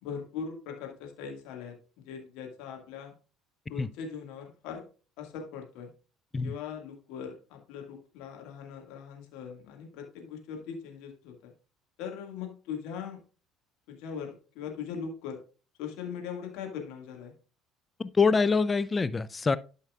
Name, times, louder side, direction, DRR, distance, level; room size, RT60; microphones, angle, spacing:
voice 1, 0.0-3.1 3.7-4.9 5.2-5.9 6.4-11.5 12.0-13.2 13.9-15.4 15.8-17.3, left 7 dB, 60° left, 1.9 m, -40 dB
voice 2, 18.0-19.6, left 4 dB, 25° left, 0.4 m, -25 dB
12.0 x 5.6 x 2.4 m
figure-of-eight pair, 60°, 0 cm